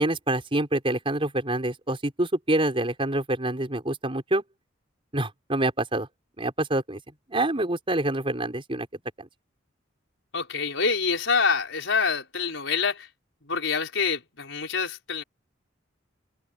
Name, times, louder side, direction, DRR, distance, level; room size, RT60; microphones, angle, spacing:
voice 1, 0.0-4.4 5.1-6.1 6.4-7.0 7.3-8.9 9.2-9.3, right 1 dB, 30° right, 4.9 m, -26 dB
voice 2, 10.3-13.1 13.4-15.2, left 5 dB, 75° left, 5.3 m, -26 dB
head